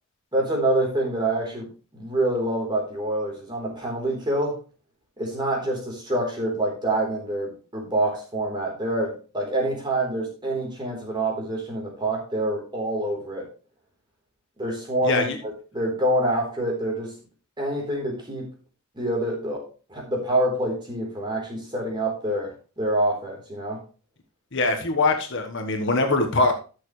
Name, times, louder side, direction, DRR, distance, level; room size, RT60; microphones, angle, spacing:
voice 1, 0.3-1.7 1.9-4.5 5.2-13.4 14.6-15.3 15.7-17.1 17.6-18.5 19.0-19.6 19.9-22.5 22.8-23.8, right 1 dB, 20° right, -1 dB, 3.8 m, -26 dB
voice 2, 15.0-15.4 24.5-26.5, left 3 dB, 55° left, 4 dB, 1.3 m, -22 dB
13.5 x 6.6 x 3.2 m, 0.35 s
head